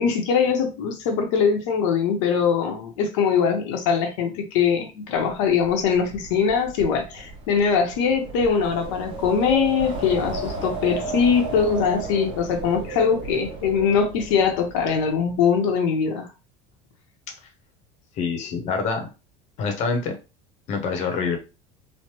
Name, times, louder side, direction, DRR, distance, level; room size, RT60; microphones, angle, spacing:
voice 1, 0.0-16.3, left 6 dB, 85° left, 0.8 m, -22 dB
Wind, 5.3-15.4, right 3 dB, 35° right, 0.8 m, -34 dB
voice 2, 18.2-19.1 19.6-20.1 20.7-21.4, left 4 dB, 45° left, 0.8 m, -25 dB
3.2 x 2.1 x 3.0 m
cardioid pair, 145°, 16 cm